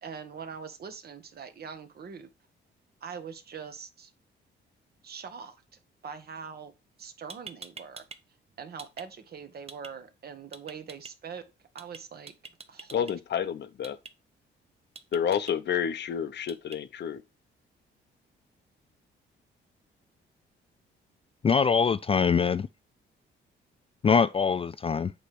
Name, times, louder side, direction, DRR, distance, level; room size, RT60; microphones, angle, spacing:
voice 1, 0.0-2.3 3.0-4.1 5.0-5.5 6.0-6.7 7.0-8.1 8.6-11.4 11.7-12.3 12.7-13.1, right 6 dB, 50° right, 1.5 m, -42 dB
sound 1, 7.0-7.1 7.3-8.2 8.5-9.1 9.7-9.9 10.5-11.1 11.8-12.0 12.3-13.1 13.8-14.1 15.0-15.5 16.5-16.8, right 4 dB, 30° right, 1.0 m, -44 dB
voice 2, 12.9-14.0 15.1-17.2, left 8 dB, 60° left, 1.0 m, -29 dB
voice 3, 21.4-22.7 24.0-25.1, left 6 dB, 30° left, 0.4 m, -23 dB
8.4 x 3.4 x 6.0 m
cardioid pair, 90°, 20 cm